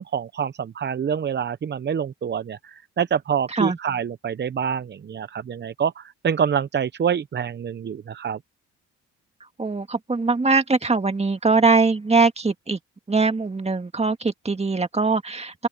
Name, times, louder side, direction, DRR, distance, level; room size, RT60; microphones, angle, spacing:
voice 1, 0.0-8.4, right 7 dB, 35° right, 0.7 m, -26 dB
voice 2, 9.6-12.8 13.1-15.7, right 4 dB, 20° right, 2.0 m, -21 dB
open air
cardioid pair, 90°, 30 cm